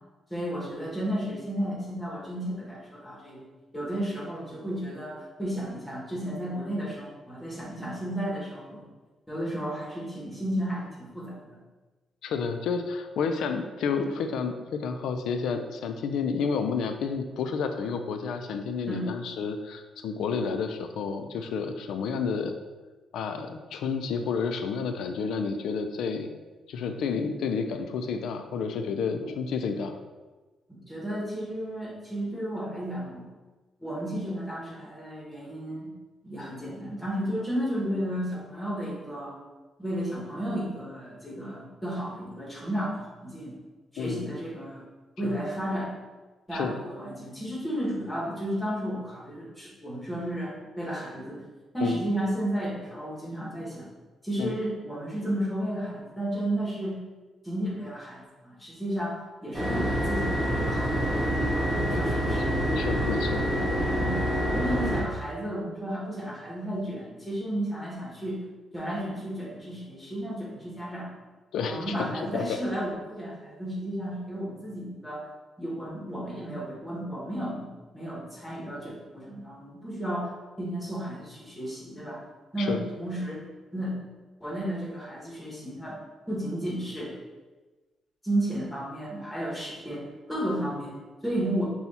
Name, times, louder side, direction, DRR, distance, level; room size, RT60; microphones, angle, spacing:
voice 1, 0.3-3.4 3.7-8.8 9.3-11.5 18.9-19.1 29.2-29.3 30.9-33.2 33.8-35.9 36.2-39.4 39.8-43.6 43.9-44.8 45.2-45.9 46.5-51.4 51.7-53.9 54.2-57.0 57.4-61.0 61.8-62.5 63.9-68.4 68.7-71.1 71.7-75.3 75.6-80.3 80.6-82.2 82.5-83.4 83.7-84.0 84.4-86.0 86.3-87.2 88.2-91.7, right 1 dB, 5° left, -5 dB, 1.1 m, -33 dB
voice 2, 12.2-22.5 23.1-26.3 26.7-30.0 44.0-44.3 45.2-45.3 46.5-46.7 51.8-52.0 54.4-54.5 61.9-62.3 62.7-63.5 71.5-72.6 82.6-82.8, left 5 dB, 85° left, 7 dB, 0.4 m, -30 dB
sound 1, 59.5-65.0, equal, 35° right, 1.3 m, -26 dB
5.7 x 2.3 x 4.0 m, 1.3 s
cardioid pair, 175°, 0 cm